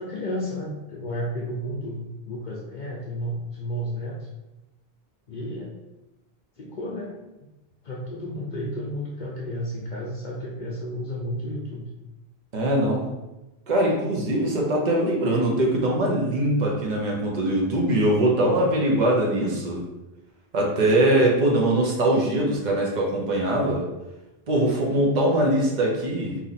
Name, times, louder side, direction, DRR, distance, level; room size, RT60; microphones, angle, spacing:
voice 1, 0.0-4.3 5.3-5.8 6.6-7.2 7.8-11.9, equal, 55° left, -2 dB, 0.7 m, -32 dB
voice 2, 12.5-13.0 13.7-19.8 20.5-23.8 24.5-26.4, right 1 dB, 50° right, -1 dB, 1.0 m, -22 dB
4.4 x 2.8 x 4.1 m, 1.0 s
omnidirectional pair, 1.0 m